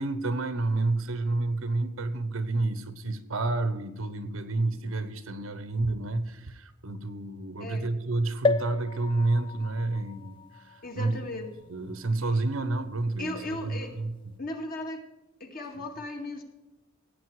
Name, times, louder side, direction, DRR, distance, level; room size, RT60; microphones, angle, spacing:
voice 1, 0.0-11.2 11.7-14.2, right 2 dB, 85° right, 11 dB, 1.2 m, -30 dB
sound 1, 8.4-12.1 12.7-12.8 13.0-13.1, left 3 dB, 25° left, 0.3 m, -33 dB
voice 2, 10.8-11.5 13.2-13.9 14.4-15.0 15.4-16.4, left 1 dB, 45° left, 2 dB, 2.1 m, -36 dB
17.0 x 8.6 x 4.9 m, 0.99 s
head